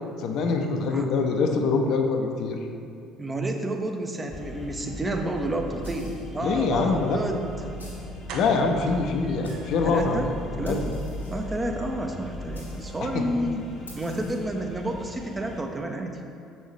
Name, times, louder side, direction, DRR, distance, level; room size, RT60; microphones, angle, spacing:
voice 1, 0.2-2.6 6.4-7.2 8.3-10.3 10.7-10.8 13.0-13.1, left 4 dB, 55° left, 4 dB, 0.5 m, -24 dB
voice 2, 3.2-7.4 9.8-10.3 10.6-10.8 11.3-13.6 13.9-16.2, right 1 dB, 20° right, 3 dB, 0.7 m, -30 dB
sound 1, 4.3-15.6, equal, 35° left, 0.9 m, -38 dB
sound 2, 5.8-6.4 7.8-8.2 9.0-9.1 9.4-10.1 10.6-11.5 12.5-13.0 13.9-14.5, left 1 dB, 85° left, 0.9 m, -50 dB
sound 3, 7.6-7.7 8.3-10.0 10.4-10.5 10.9-11.0 11.3-11.4, right 3 dB, 60° right, 0.6 m, -43 dB
7.0 x 5.4 x 3.2 m, 2.4 s
figure-of-eight pair, 55°, 0 cm